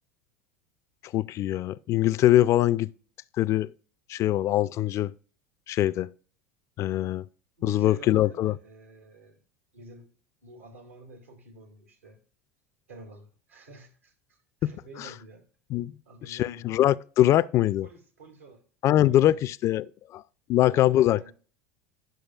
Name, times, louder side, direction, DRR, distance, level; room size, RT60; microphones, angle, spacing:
voice 1, 1.0-2.9 3.4-3.7 4.1-5.1 5.7-6.1 6.8-7.3 7.6-8.6 14.6-14.7 15.0-15.1 15.7-15.9 16.2-17.9 18.8-19.9 20.1-20.2 20.5-21.2, left 13 dB, 45° left, 0.3 m, -23 dB
voice 2, 7.6-9.4 9.7-10.1 10.4-12.2 12.9-15.4 16.1-16.7 17.8-18.6 19.0-19.5 20.7-21.3, right 2 dB, 90° right, 2.2 m, -49 dB
10.5 x 6.3 x 2.3 m
hypercardioid pair, 80°, 7 cm